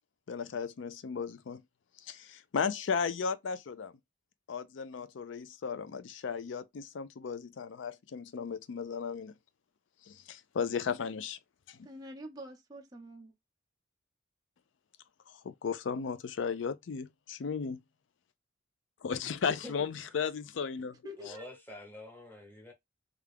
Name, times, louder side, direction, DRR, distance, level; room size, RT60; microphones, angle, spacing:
voice 1, 0.3-1.6 2.0-3.9 4.5-9.3 10.1-11.4 11.7-11.8 15.3-17.8 19.0-21.0, left 6 dB, 80° left, 0.4 m, -35 dB
voice 2, 11.8-13.3 21.0-21.6, equal, 20° right, 0.6 m, -46 dB
voice 3, 19.2-19.9 21.2-22.7, left 2 dB, 10° left, 1.0 m, -47 dB
3.4 x 2.4 x 3.4 m
head